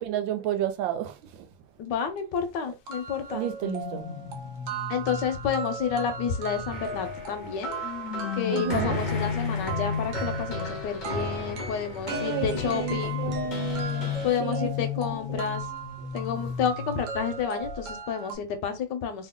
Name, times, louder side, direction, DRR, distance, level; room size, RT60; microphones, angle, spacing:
voice 1, 0.0-1.5 3.3-4.0 8.5-9.0 12.1-14.1 14.4-15.5 16.0-16.1 16.3-16.4, right 12 dB, 80° right, 1.4 m, -32 dB
voice 2, 1.8-3.5 4.9-7.7 8.3-13.2 14.2-15.7 16.1-19.3, left 7 dB, 75° left, 1.2 m, -30 dB
sound 1, 1.9-2.0 2.4-2.5 2.9-18.3, right 5 dB, 55° right, 0.9 m, -38 dB
sound 2, 3.6-7.2 7.8-11.1 12.1-17.3 17.6-17.9, left 7 dB, 90° left, 0.7 m, -34 dB
sound 3, 6.7-14.3, left 1 dB, 45° left, 0.6 m, -36 dB
3.0 x 2.7 x 3.5 m
omnidirectional pair, 2.1 m